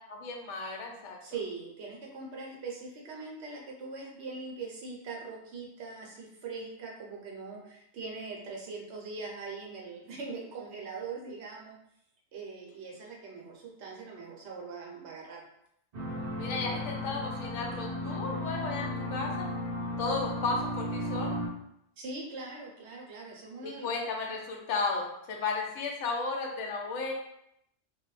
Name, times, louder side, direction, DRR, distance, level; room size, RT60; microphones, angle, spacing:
voice 1, 0.1-1.2 16.4-19.5 20.0-21.4 23.6-27.1, left 3 dB, 75° left, 1 dB, 0.9 m, -34 dB
voice 2, 1.2-11.8 12.3-15.4 22.0-23.9, right 4 dB, 70° right, -2 dB, 0.9 m, -41 dB
sound 1, 15.9-21.5, left 1 dB, 45° right, 0.6 m, -35 dB
2.3 x 2.0 x 3.0 m, 0.77 s
omnidirectional pair, 1.3 m